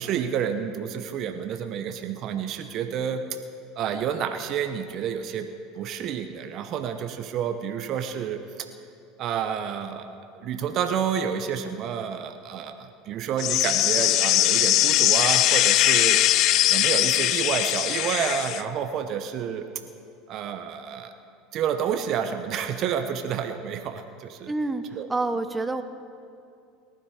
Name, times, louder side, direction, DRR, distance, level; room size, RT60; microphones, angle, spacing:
voice 1, 0.0-3.2 3.8-5.5 5.7-8.7 9.2-10.1 10.4-19.7 20.3-21.1 21.5-24.5 24.9-25.1, right 8 dB, 50° right, 8 dB, 0.9 m, -29 dB
sound 1, 13.4-18.6, left 14 dB, 55° left, 0.5 m, -21 dB
voice 2, 24.5-25.8, right 2 dB, 15° right, 9 dB, 0.8 m, -28 dB
18.5 x 12.0 x 5.0 m, 2.5 s
hypercardioid pair, 85°, 0 cm